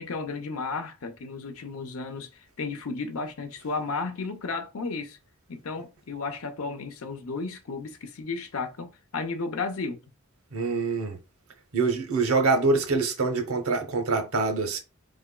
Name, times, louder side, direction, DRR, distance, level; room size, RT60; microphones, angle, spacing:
voice 1, 0.0-5.2 5.5-10.0, left 4 dB, 80° left, 0.6 m, -33 dB
voice 2, 10.5-11.2 11.7-14.8, right 3 dB, 80° right, 0.8 m, -25 dB
3.8 x 3.4 x 2.2 m
head